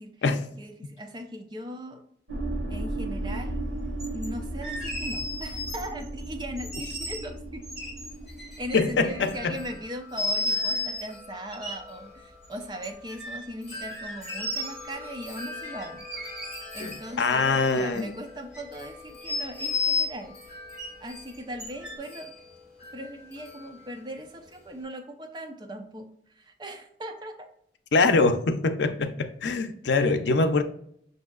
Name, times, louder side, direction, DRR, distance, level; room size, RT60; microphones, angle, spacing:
voice 1, 0.6-2.0 2.7-3.6 4.1-7.7 8.6-16.0 16.7-20.4 21.0-22.4 22.9-27.5, equal, 25° right, 0.5 m, -39 dB
sound 1, 2.3-9.8, right 1 dB, 80° right, 0.8 m, -35 dB
sound 2, 4.0-4.3 4.6-6.1 6.6-7.2 7.6-9.2 10.2-11.0 11.5-11.7 12.8-13.5 13.9-14.9 15.8-17.0 17.2-18.2 18.5-18.7 19.2-20.1 20.8-20.9 21.6-22.0, left 3 dB, 5° right, 1.6 m, -32 dB
Wind chime, 8.0-24.8, left 2 dB, 35° left, 1.3 m, -46 dB
voice 2, 8.7-9.6 16.8-18.1 27.9-30.6, left 3 dB, 90° left, 0.5 m, -24 dB
6.0 x 2.7 x 2.3 m
head